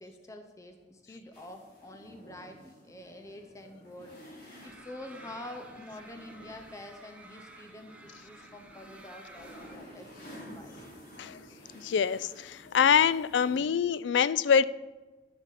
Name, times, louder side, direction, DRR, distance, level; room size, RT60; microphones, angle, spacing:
voice 1, 0.0-11.3, left 1 dB, 20° left, 0.8 m, -47 dB
sound 1, 1.3-13.6, equal, 60° left, 3.1 m, -52 dB
sound 2, 4.6-9.8, right 2 dB, 5° right, 1.0 m, -52 dB
voice 2, 11.8-14.6, left 7 dB, 85° left, 0.3 m, -25 dB
10.0 x 10.0 x 4.1 m
head